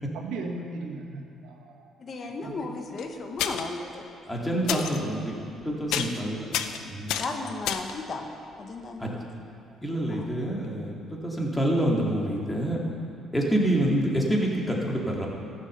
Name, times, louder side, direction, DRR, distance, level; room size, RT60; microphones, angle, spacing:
voice 1, 0.1-1.9 2.2-2.5, right 3 dB, 85° right, 2 dB, 1.4 m, -37 dB
voice 2, 2.0-4.1 4.7-4.8 7.2-8.3 8.6-9.2 10.1-10.6, left 3 dB, 45° left, 4 dB, 1.2 m, -35 dB
sound 1, 3.0-3.1 3.4-3.8 4.7-5.0 5.4-5.6 5.9-6.2 6.5-8.0 10.3-10.4 10.6-10.7, left 9 dB, 85° left, 0.6 m, -30 dB
voice 3, 4.3-5.3 5.7-6.4 6.8-7.2 9.0-9.1 9.8-10.9 11.2-12.8 13.3-15.3, right 1 dB, 10° left, -2 dB, 2.4 m, -27 dB
13.5 x 7.1 x 6.8 m, 2.6 s
cardioid pair, 85°, 0 cm